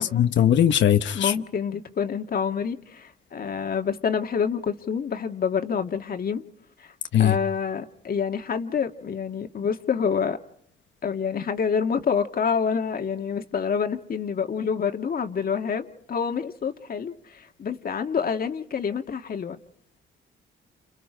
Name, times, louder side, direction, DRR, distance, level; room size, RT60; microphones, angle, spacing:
voice 1, 0.0-1.3 7.1-7.3, left 10 dB, 70° left, 1.1 m, -20 dB
voice 2, 1.1-6.4 6.8-6.9 7.2-10.4 11.0-19.6, left 6 dB, 50° left, 1.8 m, -27 dB
29.5 x 26.5 x 5.1 m
cardioid pair, 90°, 20 cm